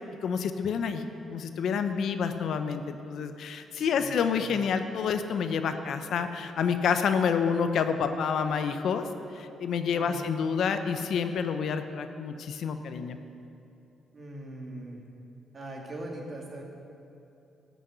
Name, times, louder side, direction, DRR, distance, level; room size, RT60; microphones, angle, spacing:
voice 1, 0.2-1.0 1.3-9.1 9.3-13.2, left 6 dB, 70° left, 8 dB, 0.7 m, -28 dB
voice 2, 3.8-4.5 9.9-10.3 14.1-15.0 15.5-16.6, right 1 dB, 35° right, 0 dB, 2.3 m, -41 dB
13.5 x 6.4 x 8.1 m, 2.8 s
cardioid pair, 90°, 0 cm